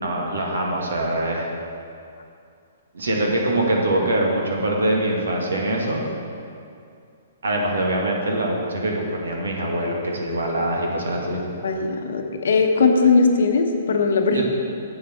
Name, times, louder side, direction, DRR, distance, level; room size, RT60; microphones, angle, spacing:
voice 1, 0.0-1.5 2.9-6.0 7.4-11.4 14.3-14.4, right 1 dB, 70° right, -1 dB, 1.9 m, -23 dB
voice 2, 11.6-14.4, left 4 dB, 65° left, 4 dB, 0.9 m, -19 dB
10.5 x 7.9 x 4.4 m, 2.4 s
figure-of-eight pair, 120°, 0 cm